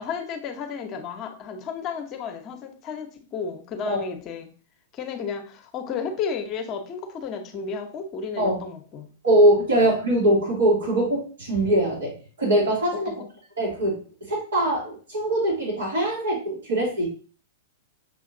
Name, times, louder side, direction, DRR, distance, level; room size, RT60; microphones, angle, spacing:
voice 1, 0.0-4.5 5.0-9.1 9.8-9.9 13.1-13.3, left 6 dB, 35° left, 5 dB, 0.9 m, -33 dB
voice 2, 9.2-12.1 12.4-13.1 13.6-17.1, right 1 dB, 80° right, -6 dB, 2.3 m, -22 dB
6.5 x 2.8 x 2.6 m, 0.39 s
hypercardioid pair, 105°, 0 cm